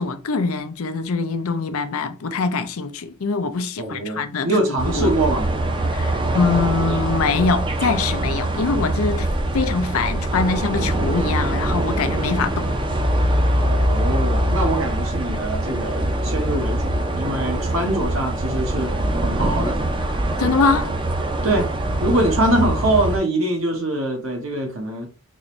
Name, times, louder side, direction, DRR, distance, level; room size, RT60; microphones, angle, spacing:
voice 1, 0.0-4.5 4.9-5.1 5.9-9.3 9.5-12.7 20.4-20.9, left 4 dB, 85° left, 0.5 m, -23 dB
voice 2, 3.8-5.5 13.6-18.9 19.2-19.8 20.4-20.5 21.4-21.7 22.0-25.1, right 1 dB, 70° right, 1.2 m, -23 dB
sound 1, 4.8-23.2, right 1 dB, 25° right, 0.5 m, -23 dB
3.8 x 2.5 x 3.0 m
head